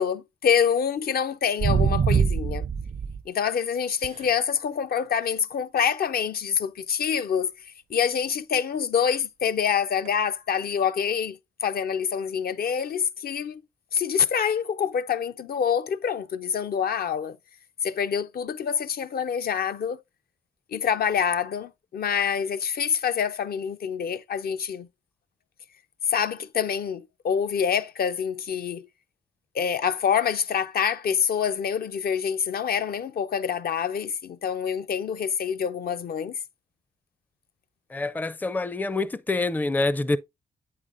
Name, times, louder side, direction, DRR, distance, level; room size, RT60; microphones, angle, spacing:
voice 1, 0.0-2.7 3.3-13.6 13.9-17.4 17.8-20.0 20.7-24.9 26.1-28.9 29.5-36.4, left 7 dB, 55° left, 0.6 m, -26 dB
sound 1, 1.6-3.2 4.0-4.2 10.0-10.1, right 6 dB, 45° right, 0.4 m, -23 dB
voice 2, 37.9-40.2, left 2 dB, 10° left, 0.4 m, -26 dB
8.3 x 5.0 x 2.5 m
supercardioid pair, 55°, 18 cm